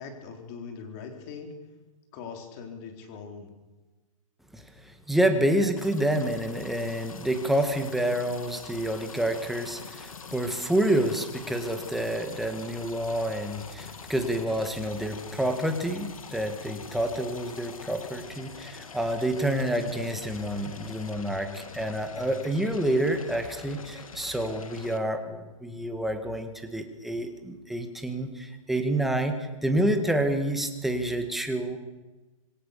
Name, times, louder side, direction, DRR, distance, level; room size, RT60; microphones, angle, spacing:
voice 1, 0.0-1.6 2.1-3.5, left 5 dB, 30° left, 4 dB, 4.4 m, -41 dB
voice 2, 4.5-31.8, right 1 dB, ahead, 5 dB, 1.9 m, -28 dB
sound 1, 5.8-25.0, left 5 dB, 75° left, 3.0 m, -44 dB
26.0 x 20.0 x 7.0 m, 1.2 s
hypercardioid pair, 155°, 18 cm